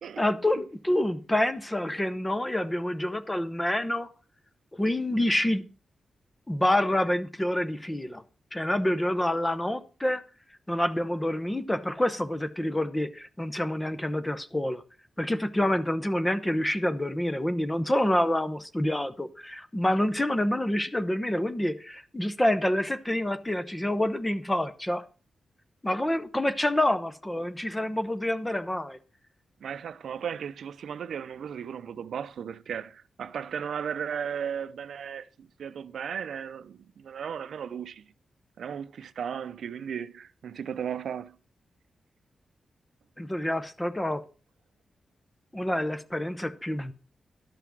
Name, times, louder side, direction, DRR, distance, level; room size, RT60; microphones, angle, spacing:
voice 1, 0.2-4.1 4.7-5.6 6.5-8.2 8.5-10.2 10.7-14.8 15.2-25.0 25.8-29.0 43.2-44.2 45.5-46.9, left 1 dB, 10° left, 0.7 m, -27 dB
voice 2, 29.6-38.0 38.6-41.4, right 8 dB, 90° right, 0.5 m, -35 dB
11.5 x 5.8 x 6.1 m
wide cardioid pair, 160°, 0 cm